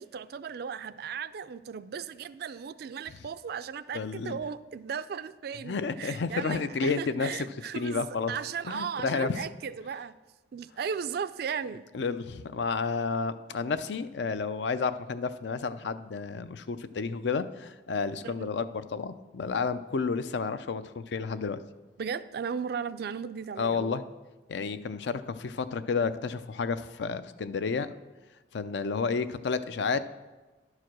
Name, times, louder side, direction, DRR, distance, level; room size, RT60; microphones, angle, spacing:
voice 1, 0.0-10.1 10.5-11.8 18.2-18.5 22.0-24.0, right 7 dB, 60° right, 15 dB, 0.4 m, -36 dB
voice 2, 3.9-4.4 5.6-7.5 7.7-8.3 8.7-9.4 11.9-21.6 23.6-24.0 24.5-27.9 28.5-30.0, left 5 dB, 70° left, 12 dB, 0.5 m, -31 dB
11.5 x 4.9 x 6.0 m, 1.2 s
head